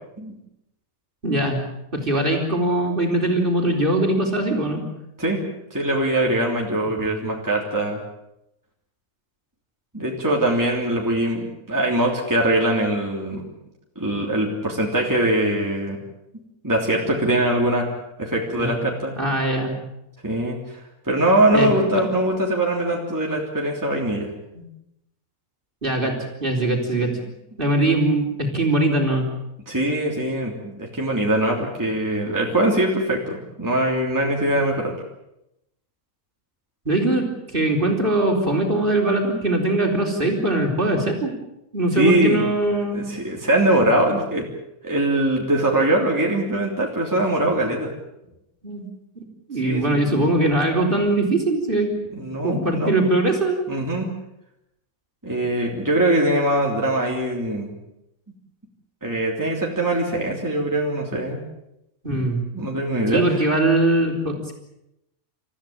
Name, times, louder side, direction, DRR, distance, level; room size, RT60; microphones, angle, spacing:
voice 1, 1.2-1.6 1.9-4.8 7.0-7.1 18.5-18.8 19.2-19.7 21.5-21.7 25.8-27.2 27.6-29.3 36.9-41.3 41.7-43.0 48.6-48.8 49.2-49.3 49.5-51.9 52.4-53.7 62.0-62.4 63.1-64.5, right 2 dB, 35° right, 2 dB, 4.3 m, -21 dB
voice 2, 5.7-8.0 9.9-13.4 13.9-16.0 16.6-17.9 18.2-19.1 20.2-24.3 29.7-34.9 41.9-42.4 42.9-44.4 44.8-47.9 49.6-50.0 52.1-53.1 53.7-54.1 55.2-57.7 59.0-61.4 62.5-63.4, right 1 dB, 10° right, -1 dB, 3.4 m, -22 dB
29.5 x 14.5 x 8.9 m, 0.86 s
omnidirectional pair, 1.6 m